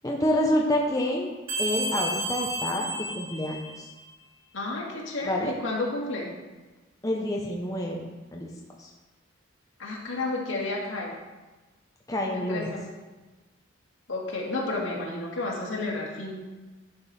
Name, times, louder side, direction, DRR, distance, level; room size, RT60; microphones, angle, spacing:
voice 1, 0.0-1.3 1.6-2.9 3.1-3.9 5.2-5.5 7.0-8.0 8.3-8.5 8.8-8.9 12.1-12.7, left 1 dB, 15° left, -2 dB, 0.8 m, -27 dB
sound 1, 1.5-4.0, right 1 dB, 70° right, 2.2 m, -32 dB
voice 2, 4.5-6.3 9.8-11.1 12.3-12.9 14.1-16.3, left 2 dB, 75° left, -3 dB, 2.0 m, -31 dB
10.5 x 5.3 x 4.2 m, 1.2 s
head